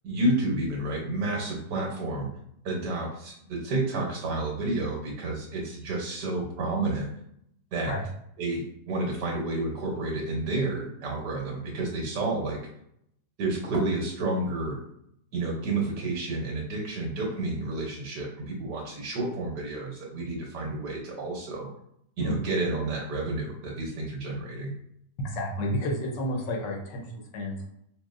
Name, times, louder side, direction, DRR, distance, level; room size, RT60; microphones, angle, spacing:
voice 1, 0.0-2.3 2.6-7.1 7.7-7.9 8.4-12.6 13.4-14.8 15.3-21.7 22.2-24.7, right 2 dB, 70° right, -2 dB, 1.6 m, -30 dB
voice 2, 25.2-27.6, equal, 80° left, -1 dB, 1.5 m, -31 dB
5.7 x 2.4 x 2.5 m, 0.73 s
omnidirectional pair, 1.9 m